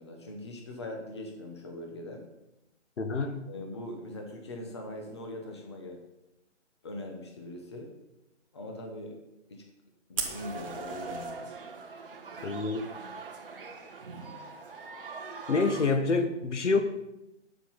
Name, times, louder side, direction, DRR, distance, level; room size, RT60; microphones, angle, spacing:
voice 1, 0.0-2.3 3.5-6.0 6.8-7.9 8.5-9.2 9.5-9.7 10.1-11.5, left 1 dB, 25° left, 2 dB, 1.0 m, -41 dB
voice 2, 3.0-3.4 12.4-12.8 15.5-16.8, left 3 dB, 75° left, 8 dB, 1.4 m, -27 dB
Fire, 10.1-11.3, right 4 dB, 30° right, 1.3 m, -37 dB
sound 1, 10.2-15.9, right 4 dB, 45° right, 1.3 m, -42 dB
9.5 x 7.5 x 5.6 m, 0.93 s
hypercardioid pair, 175°, 36 cm